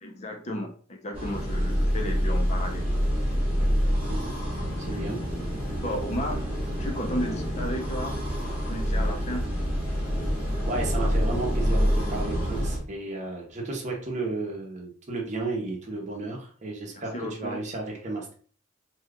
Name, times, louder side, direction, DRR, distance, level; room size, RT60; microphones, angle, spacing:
voice 1, 0.0-2.9 4.9-5.0 5.8-8.2 8.6-9.5 16.9-17.6, left 1 dB, 30° left, 2 dB, 0.5 m, -34 dB
sound 1, 1.1-12.8, equal, 5° right, 1.0 m, -27 dB
voice 2, 4.8-5.2 10.7-18.3, right 2 dB, 35° right, -1 dB, 0.8 m, -33 dB
2.8 x 2.4 x 3.4 m, 0.44 s
head